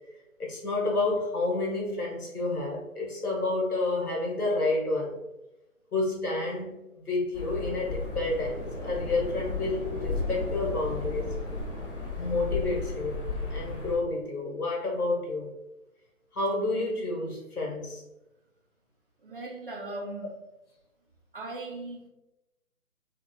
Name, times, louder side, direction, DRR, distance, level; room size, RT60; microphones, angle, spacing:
voice 1, 0.4-5.2 5.9-11.3 12.2-13.2 13.5-15.5 16.3-18.0, left 2 dB, 85° left, -1 dB, 1.2 m, -30 dB
sound 1, 7.3-14.0, left 3 dB, 40° left, 0.9 m, -34 dB
voice 2, 19.2-20.3 21.3-22.1, right 2 dB, 40° right, 0 dB, 0.5 m, -38 dB
2.8 x 2.4 x 2.6 m, 0.97 s
figure-of-eight pair, 140°, 44 cm